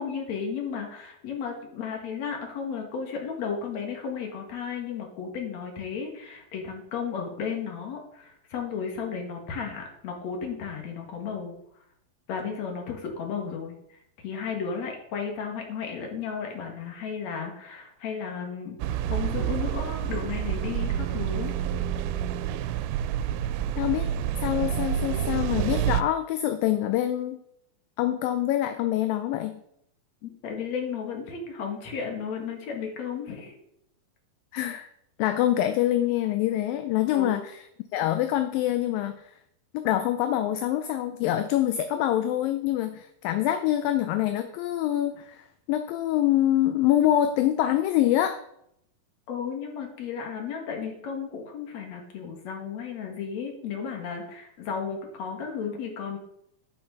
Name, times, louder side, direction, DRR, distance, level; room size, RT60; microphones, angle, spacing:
voice 1, 0.0-11.6 12.3-13.8 14.2-18.8 19.1-21.5 30.2-33.5 37.1-37.4 49.3-56.2, left 6 dB, 55° left, 2 dB, 2.9 m, -34 dB
sound 1, 18.8-26.0, right 10 dB, 90° right, 2.4 m, -28 dB
voice 2, 23.8-24.1 24.4-27.4 28.0-29.6 34.5-34.9 35.2-37.6 37.9-39.1 39.7-48.4, left 12 dB, 80° left, 9 dB, 2.3 m, -25 dB
11.5 x 6.0 x 5.3 m, 0.74 s
omnidirectional pair, 4.2 m